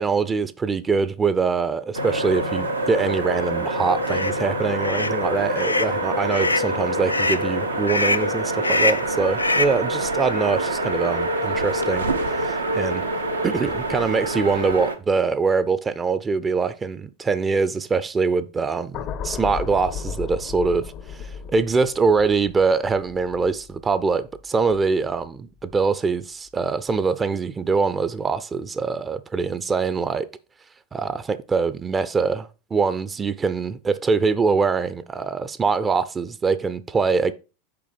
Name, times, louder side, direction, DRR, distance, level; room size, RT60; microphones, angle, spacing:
voice 1, 0.0-12.1 12.3-13.0 13.4-30.3 30.9-37.3, right 4 dB, 20° right, 0.6 m, -23 dB
sound 1, 1.9-15.0, right 1 dB, 85° right, 1.0 m, -26 dB
sound 2, 4.0-4.3 4.8-5.1 5.6-5.9 6.3-6.7 7.1-7.4 7.9-8.3 8.6-9.1 9.4-9.8, left 2 dB, 85° left, 0.4 m, -24 dB
sound 3, 18.9-25.2 25.6-25.9, left 6 dB, 40° left, 0.7 m, -35 dB
6.9 x 5.1 x 5.0 m
figure-of-eight pair, 85°, 0 cm